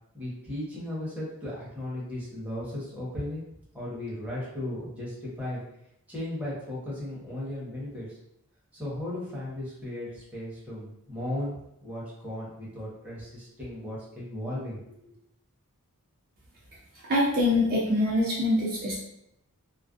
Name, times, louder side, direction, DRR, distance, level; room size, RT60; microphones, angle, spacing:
voice 1, 0.1-3.4 3.7-5.6 6.1-8.2 8.7-15.1, left 1 dB, 5° right, -7 dB, 0.8 m, -36 dB
voice 2, 17.1-18.9, left 1 dB, 45° right, -5 dB, 0.5 m, -24 dB
2.5 x 2.1 x 2.3 m, 0.80 s
head